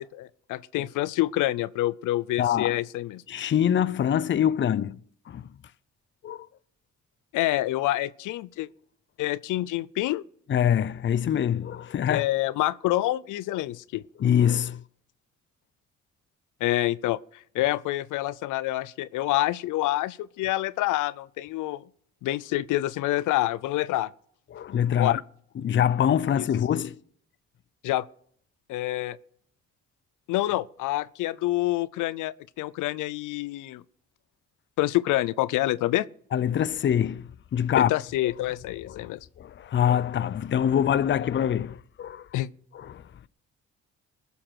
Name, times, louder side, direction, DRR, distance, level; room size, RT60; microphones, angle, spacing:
voice 1, 0.0-3.2 7.3-8.7 9.2-10.2 12.1-14.0 16.6-17.2 17.5-21.8 22.2-24.1 25.0-25.2 26.4-26.5 27.8-28.1 28.7-29.2 30.3-33.8 34.8-36.1 37.8-39.3 42.3-42.5, left 16 dB, 85° left, 0.6 m, -27 dB
voice 2, 2.4-2.8 3.3-5.0 5.3-5.4 6.2-6.5 10.5-12.2 14.2-14.8 24.5-25.2 25.6-27.0 36.3-37.9 38.2-38.3 38.9-39.1 39.4-42.3 42.7-43.0, left 9 dB, 40° left, 0.6 m, -24 dB
20.5 x 7.0 x 5.9 m
cardioid pair, 90°, 30 cm